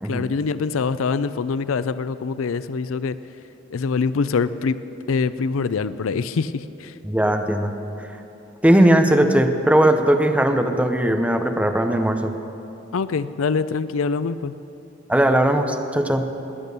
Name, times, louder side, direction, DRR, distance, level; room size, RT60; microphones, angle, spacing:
voice 1, 0.1-3.2 3.7-4.8 5.1-7.0 12.9-14.5, left 5 dB, 90° left, 14 dB, 0.5 m, -24 dB
voice 2, 7.0-7.7 8.6-12.3 15.1-16.3, right 1 dB, 5° right, 5 dB, 0.8 m, -18 dB
17.5 x 10.5 x 6.7 m, 3.0 s
head